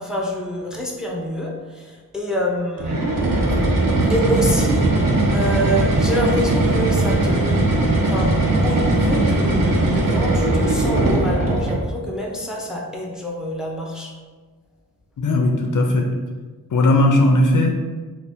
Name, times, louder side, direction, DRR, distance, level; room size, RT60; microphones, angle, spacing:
voice 1, 0.0-3.1 4.0-4.9 5.3-14.1, equal, ahead, -1 dB, 0.4 m, -26 dB
sound 1, 2.8-11.9, right 2 dB, 65° right, 0.6 m, -19 dB
voice 2, 15.2-16.1 16.7-17.7, left 1 dB, 60° left, 2 dB, 0.4 m, -17 dB
2.6 x 2.5 x 3.4 m, 1.4 s
wide cardioid pair, 105°, 36 cm